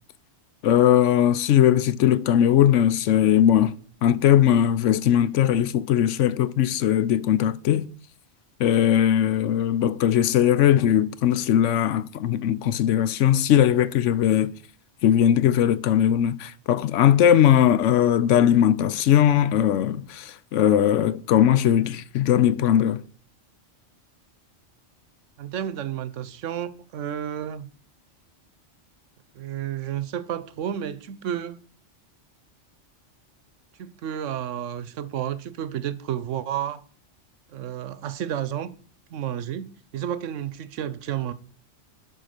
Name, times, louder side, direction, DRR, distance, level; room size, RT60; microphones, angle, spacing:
voice 1, 0.6-3.8 4.0-7.9 8.6-14.5 15.0-23.0, left 10 dB, 85° left, 1.0 m, -19 dB
voice 2, 25.4-27.7 29.3-31.6 33.8-36.8 37.5-38.7 39.1-39.6 39.9-41.3, right 10 dB, 85° right, 1.0 m, -31 dB
10.5 x 4.4 x 6.5 m
omnidirectional pair, 1.2 m